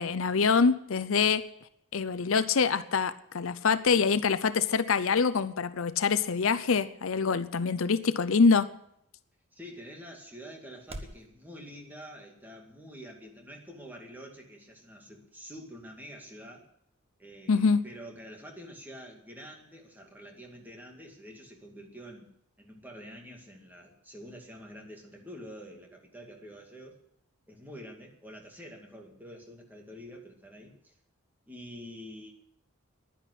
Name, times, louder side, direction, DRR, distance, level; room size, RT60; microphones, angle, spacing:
voice 1, 0.0-1.4 1.9-8.7 17.5-17.8, left 5 dB, 70° left, 13 dB, 0.6 m, -25 dB
sound 1, 5.0-11.3, right 1 dB, 30° right, 1.2 m, -53 dB
voice 2, 9.5-16.7 17.2-22.3 22.6-27.0 27.5-31.0 31.5-32.3, equal, 10° right, 1 dB, 2.3 m, -47 dB
11.0 x 10.0 x 10.0 m, 0.74 s
head